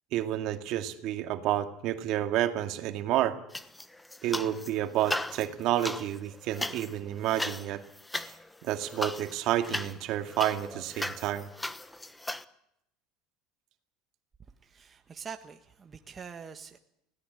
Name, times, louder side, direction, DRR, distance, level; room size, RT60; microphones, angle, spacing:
voice 1, 0.1-3.4 4.2-7.8 8.2-8.3 8.6-11.5, right 12 dB, 60° right, 7 dB, 2.2 m, -30 dB
sound 1, 3.5-4.7 5.0-12.4, left 1 dB, 5° left, 1.1 m, -37 dB
voice 2, 14.6-16.8, right 6 dB, 25° right, 6 dB, 1.5 m, -44 dB
20.0 x 17.5 x 8.7 m, 0.75 s
supercardioid pair, 115°, 0 cm